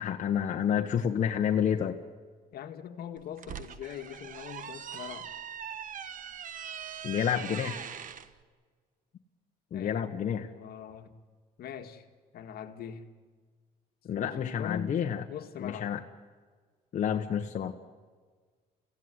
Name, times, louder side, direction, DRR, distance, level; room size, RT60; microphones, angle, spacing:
voice 1, 0.0-2.0 7.0-7.9 9.7-10.5 14.0-15.2 15.6-16.0 16.9-17.7, left 8 dB, 45° left, 3 dB, 1.4 m, -29 dB
voice 2, 2.5-5.3 9.7-11.1 11.6-12.1 12.3-13.1 14.1-15.0 15.3-15.9, left 8 dB, 65° left, 7 dB, 1.9 m, -42 dB
sound 1, 3.2-8.3, right 8 dB, 50° right, 1.3 m, -41 dB
29.5 x 16.0 x 9.9 m, 1.6 s
cardioid pair, 110°, 17 cm